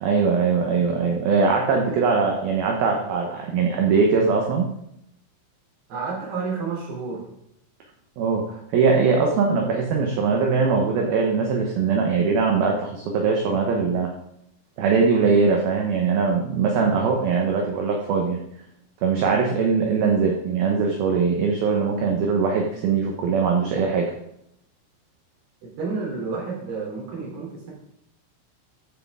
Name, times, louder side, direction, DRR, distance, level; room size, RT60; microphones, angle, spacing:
voice 1, 0.0-4.7 8.2-14.1 14.8-18.4 19.0-24.1, right 5 dB, 80° right, 1 dB, 2.2 m, -21 dB
voice 2, 5.9-7.2 25.6-27.7, right 4 dB, 55° right, -3 dB, 5.0 m, -30 dB
14.5 x 8.2 x 3.7 m, 0.76 s
omnidirectional pair, 5.9 m